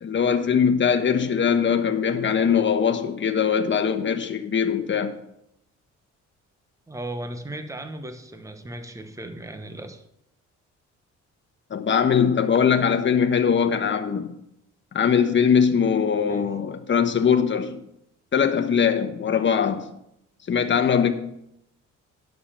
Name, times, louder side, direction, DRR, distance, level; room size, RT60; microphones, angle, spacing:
voice 1, 0.0-5.1 11.7-14.3 14.9-17.8 18.3-19.9 20.5-21.1, left 7 dB, 40° left, 1.3 m, -21 dB
voice 2, 6.9-10.0 16.3-16.5, right 1 dB, 10° right, 1.1 m, -36 dB
11.0 x 6.8 x 5.7 m
cardioid pair, 90°, 30 cm